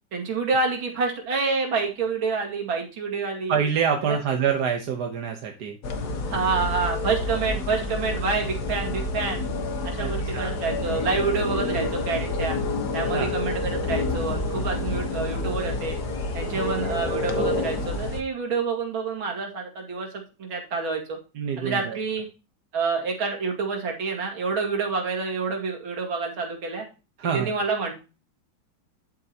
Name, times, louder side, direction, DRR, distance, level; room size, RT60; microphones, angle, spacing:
voice 1, 0.1-3.6 4.1-4.2 6.3-9.4 9.8-12.6 12.9-16.0 16.3-20.1 20.4-21.2 21.6-22.3 22.7-26.9 27.3-27.9, right 4 dB, 90° right, 1 dB, 3.0 m, -27 dB
voice 2, 3.5-5.8 10.0-10.5 13.1-13.3 16.5-16.8 21.3-22.0 27.2-27.5, right 7 dB, 60° right, 3 dB, 1.5 m, -26 dB
sound 1, 5.8-18.2, left 2 dB, 55° left, 1.7 m, -28 dB
10.5 x 7.5 x 2.9 m, 0.31 s
omnidirectional pair, 2.1 m